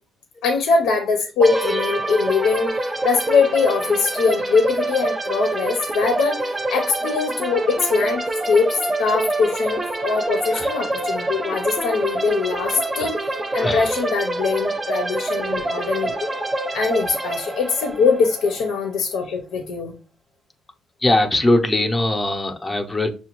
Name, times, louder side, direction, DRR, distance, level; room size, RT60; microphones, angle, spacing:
voice 1, 0.4-16.1 16.7-19.9, left 4 dB, 90° left, 5 dB, 0.6 m, -22 dB
sound 1, 1.4-19.0, right 2 dB, 20° right, 0.6 m, -26 dB
voice 2, 12.8-13.1 13.6-14.1 17.1-17.2 17.5-17.6 18.4-18.6 21.0-23.1, left 1 dB, 25° left, 5 dB, 0.6 m, -22 dB
6.2 x 2.2 x 3.0 m, 0.34 s
cardioid pair, 90°, 0 cm